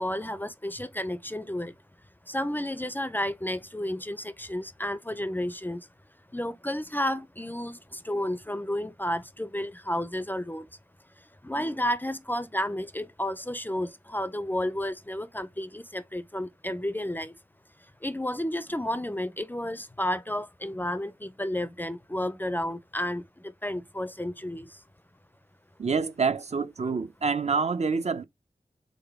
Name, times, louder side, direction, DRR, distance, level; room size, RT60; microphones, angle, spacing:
voice 1, 0.0-1.7 2.3-5.9 6.3-10.7 11.2-17.4 18.0-24.8, left 1 dB, 15° left, 0.4 m, -32 dB
voice 2, 25.8-28.2, right 5 dB, 50° right, 0.5 m, -27 dB
3.9 x 3.6 x 3.4 m
wide cardioid pair, 90°, 14 cm